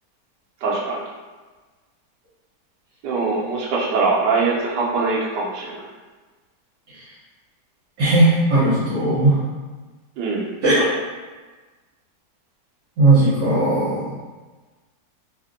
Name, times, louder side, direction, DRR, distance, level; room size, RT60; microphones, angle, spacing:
voice 1, 0.6-1.0 3.0-5.8 10.2-10.5, right 4 dB, 85° right, -3 dB, 1.3 m, -22 dB
voice 2, 8.0-9.4 10.6-10.8 13.0-14.2, right 2 dB, 65° right, -11 dB, 1.4 m, -17 dB
3.4 x 2.5 x 2.5 m, 1.3 s
omnidirectional pair, 1.8 m